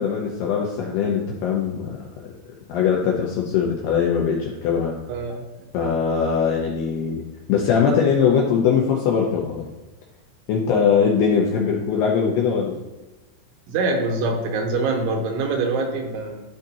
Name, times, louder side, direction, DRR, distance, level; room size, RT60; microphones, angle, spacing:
voice 1, 0.0-2.3 2.7-4.9 5.7-7.2 7.5-9.7 10.5-12.7, left 6 dB, 75° left, -1 dB, 2.5 m, -21 dB
voice 2, 5.1-5.6 13.7-16.4, right 3 dB, 75° right, 2 dB, 3.4 m, -24 dB
13.0 x 6.5 x 2.8 m, 1.1 s
omnidirectional pair, 5.7 m